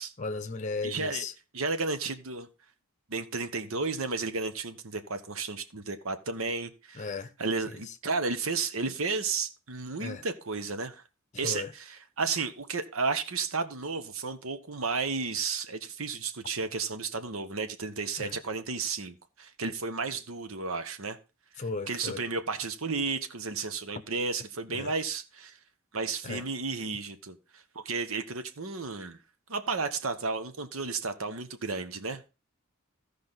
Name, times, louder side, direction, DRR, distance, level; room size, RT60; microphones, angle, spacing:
voice 1, 0.2-1.3 6.9-7.3 7.7-7.8 10.0-10.2 11.4-11.7 18.2-18.4 21.6-22.2 24.7-24.9 26.2-26.4, left 3 dB, 35° left, 0.7 m, -35 dB
voice 2, 0.8-1.2 1.5-2.5 3.1-7.1 7.4-11.0 11.4-21.2 21.9-25.6 25.9-29.2 29.5-32.2, right 4 dB, 75° right, 1.1 m, -33 dB
15.0 x 5.2 x 4.0 m
head